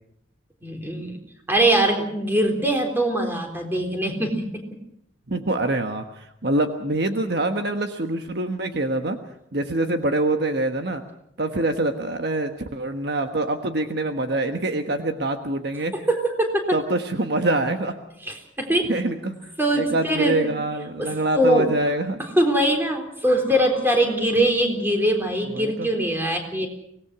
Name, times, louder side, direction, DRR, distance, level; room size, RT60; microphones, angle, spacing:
voice 1, 0.6-1.2 1.5-4.5 15.9-16.7 18.2-18.9 19.6-20.5 21.0-21.7 22.4-26.7, right 1 dB, 10° right, 3 dB, 3.7 m, -22 dB
voice 2, 5.3-6.0 6.4-9.2 9.5-11.0 11.4-15.9 16.7-18.0 18.9-19.4 19.7-22.2 25.5-25.9, right 2 dB, 60° right, 6 dB, 1.4 m, -25 dB
24.5 x 18.5 x 6.1 m, 0.74 s
head